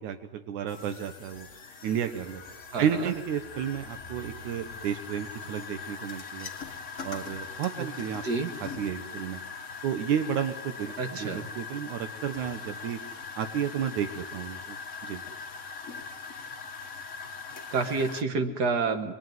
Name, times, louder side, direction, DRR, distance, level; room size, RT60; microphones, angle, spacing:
voice 1, 0.0-1.5 1.8-2.4 2.8-6.5 7.0-8.2 8.6-9.4 9.8-13.0 13.4-14.8 15.0-15.2, right 8 dB, 80° right, 8 dB, 2.5 m, -32 dB
sound 1, 0.7-18.2, left 5 dB, 45° left, 1.0 m, -41 dB
voice 2, 2.7-3.1 7.8-7.9 8.2-8.5 11.0-11.5 17.7-19.1, right 4 dB, 45° right, 6 dB, 1.5 m, -29 dB
27.5 x 21.5 x 9.4 m, 1.2 s
omnidirectional pair, 3.4 m